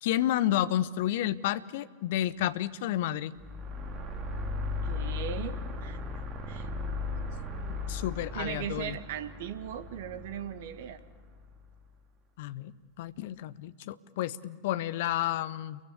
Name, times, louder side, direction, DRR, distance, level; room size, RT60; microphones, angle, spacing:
voice 1, 0.0-3.3 7.9-9.0 12.4-12.7 13.0-15.8, left 13 dB, 50° left, 15 dB, 1.0 m, -30 dB
sound 1, 3.4-11.7, left 3 dB, 25° right, 3.8 m, -37 dB
voice 2, 4.8-6.0 6.5-6.7 8.3-11.0, right 10 dB, 55° right, 12 dB, 1.7 m, -38 dB
29.5 x 23.0 x 8.6 m, 1.4 s
figure-of-eight pair, 90°, 0 cm